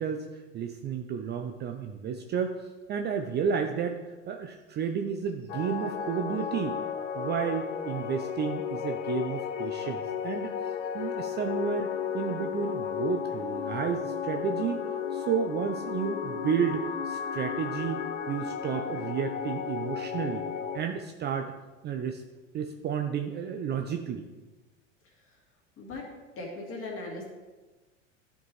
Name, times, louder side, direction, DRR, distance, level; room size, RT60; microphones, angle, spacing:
voice 1, 0.0-2.5 2.9-4.0 4.3-6.8 7.1-14.8 15.1-20.4 20.7-21.5 21.8-22.2 22.5-24.3, right 7 dB, 30° right, 5 dB, 0.5 m, -32 dB
sound 1, 5.5-20.8, left 7 dB, 80° left, 0.6 m, -34 dB
voice 2, 25.8-26.1 26.4-27.3, left 2 dB, 35° left, -2 dB, 2.3 m, -38 dB
10.5 x 4.5 x 3.1 m, 1.2 s
hypercardioid pair, 85°, 37 cm